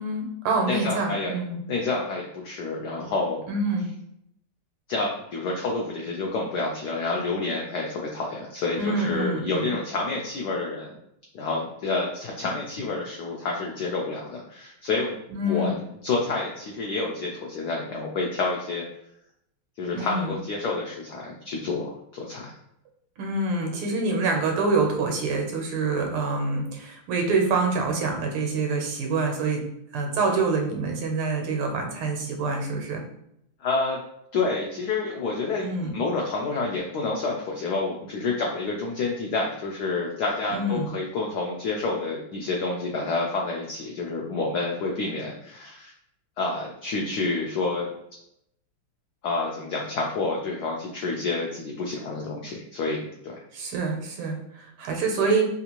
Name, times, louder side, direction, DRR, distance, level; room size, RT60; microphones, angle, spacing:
voice 1, 0.0-1.6 3.5-3.9 8.8-9.7 15.3-15.8 19.9-20.4 23.2-29.6 29.9-33.0 35.6-36.0 40.5-40.9 53.5-55.4, right 3 dB, 85° right, 2 dB, 1.6 m, -26 dB
voice 2, 0.7-1.3 1.7-3.4 4.9-10.9 11.3-15.8 16.0-18.8 19.8-22.5 33.6-34.0 34.3-35.7 35.9-45.9 46.4-47.9 49.2-53.4, left 3 dB, 85° left, -1 dB, 0.9 m, -29 dB
3.5 x 2.5 x 2.9 m, 0.77 s
omnidirectional pair, 2.3 m